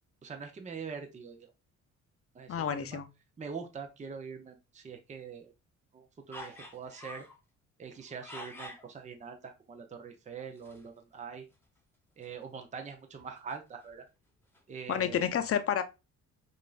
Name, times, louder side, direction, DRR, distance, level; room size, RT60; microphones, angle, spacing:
voice 1, 0.2-1.5 2.3-3.0 3.4-5.5 5.9-7.2 7.8-11.4 12.2-14.0 14.7-15.2, right 6 dB, 25° right, 0.6 m, -43 dB
voice 2, 2.5-3.1 14.9-15.8, left 8 dB, 50° left, 0.6 m, -30 dB
sound 1, 6.3-7.4 7.9-8.9 10.6-10.9 11.2-11.3 11.5-11.7 12.2-12.4 13.1-14.1 14.5-14.6, left 1 dB, 5° left, 1.0 m, -47 dB
5.2 x 2.6 x 2.3 m
cardioid pair, 90°, 30 cm